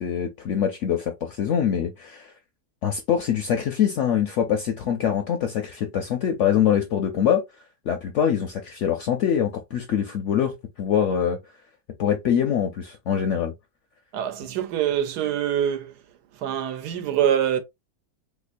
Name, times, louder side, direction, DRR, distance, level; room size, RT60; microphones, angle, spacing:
voice 1, 0.0-2.3 2.8-7.4 7.9-11.4 12.0-13.5, left 8 dB, 70° left, 0.7 m, -24 dB
voice 2, 14.1-15.9 16.4-17.6, right 10 dB, 80° right, 1.2 m, -24 dB
3.5 x 3.0 x 2.5 m
omnidirectional pair, 1.7 m